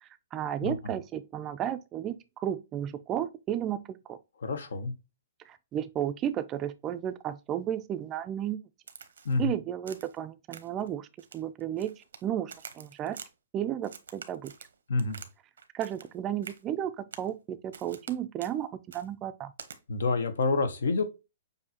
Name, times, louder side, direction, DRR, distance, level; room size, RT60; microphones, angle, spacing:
voice 1, 0.0-4.2 5.5-8.6 9.4-11.1 11.3-13.2 13.5-14.5 15.7-19.5, right 10 dB, 20° right, 0.3 m, -33 dB
voice 2, 4.4-4.9 9.2-9.5 14.9-15.2 19.9-21.0, left 3 dB, 85° left, 1.1 m, -28 dB
Crack, 8.9-9.4 9.9-10.2 10.5-10.9 11.2-12.2 12.5-13.3 13.8-15.3 15.6-16.1 16.4-16.6 17.1-17.3 17.7-18.1 18.4-18.5 18.9-19.1 19.6-19.8, right 6 dB, 90° right, 0.8 m, -47 dB
6.8 x 2.7 x 2.8 m
hypercardioid pair, 160°, 0 cm